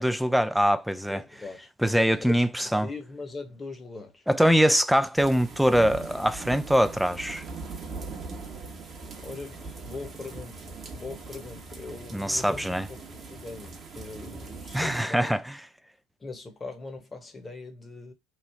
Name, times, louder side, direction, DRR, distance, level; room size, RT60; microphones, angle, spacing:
voice 1, 0.0-1.2 1.8-2.9 4.3-7.4 12.1-12.9 14.7-15.5, equal, ahead, 0.3 m, -23 dB
voice 2, 1.1-1.7 2.2-4.3 9.2-10.6 10.9-15.4 16.2-18.1, left 3 dB, 20° left, 1.0 m, -41 dB
sound 1, 5.2-15.0, right 4 dB, 35° right, 0.9 m, -41 dB
3.1 x 2.3 x 3.4 m
figure-of-eight pair, 65°, 0 cm